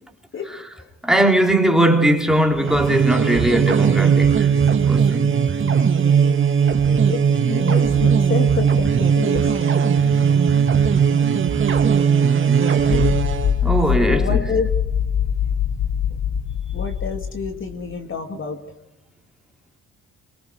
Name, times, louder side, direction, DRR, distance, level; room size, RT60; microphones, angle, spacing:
voice 1, 1.0-4.5 4.9-5.6 13.6-14.5, right 1 dB, ahead, 3.2 m, -19 dB
sound 1, 2.5-13.5, right 7 dB, 40° right, 2.2 m, -18 dB
voice 2, 7.1-9.5 13.9-14.7 16.7-18.6, left 5 dB, 40° left, 2.1 m, -28 dB
sound 2, 12.9-17.7, left 8 dB, 75° left, 2.0 m, -22 dB
28.0 x 24.0 x 4.7 m
cardioid pair, 90°, 30 cm